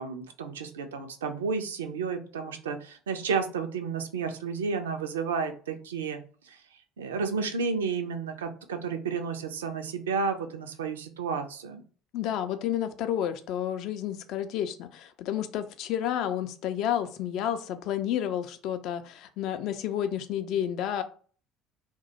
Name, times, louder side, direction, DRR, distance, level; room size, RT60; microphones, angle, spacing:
voice 1, 0.0-6.2 6.4-6.6 7.0-11.8, right 5 dB, 70° right, 6 dB, 0.3 m, -32 dB
voice 2, 12.1-21.0, left 10 dB, 55° left, 9 dB, 0.3 m, -30 dB
2.2 x 2.0 x 2.8 m, 0.41 s
figure-of-eight pair, 60°, 0 cm